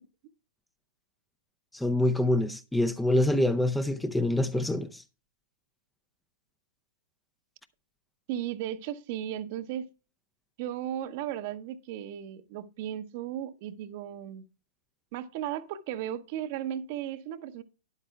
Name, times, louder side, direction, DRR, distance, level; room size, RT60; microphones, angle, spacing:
voice 1, 1.7-5.0, left 1 dB, 5° left, 0.5 m, -26 dB
voice 2, 8.3-9.9 10.6-14.4 15.1-17.6, right 11 dB, 40° right, 0.8 m, -35 dB
12.0 x 10.5 x 2.3 m
figure-of-eight pair, 105°, 0 cm